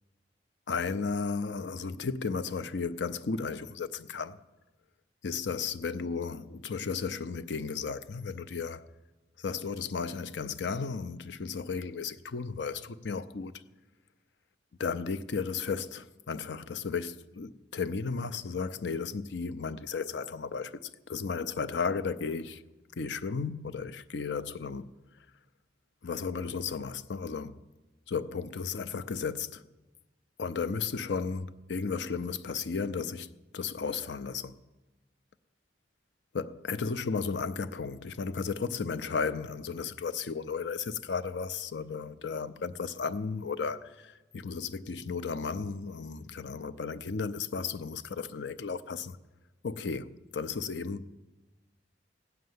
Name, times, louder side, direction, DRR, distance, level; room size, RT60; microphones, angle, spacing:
voice 1, 0.7-4.4 5.2-8.9 9.4-13.6 14.8-22.6 23.0-24.9 26.0-27.6 28.1-29.6 30.4-33.3 33.5-34.6 36.3-49.2 49.6-51.1, left 5 dB, 80° left, 0.6 m, -34 dB
16.0 x 6.6 x 9.4 m
head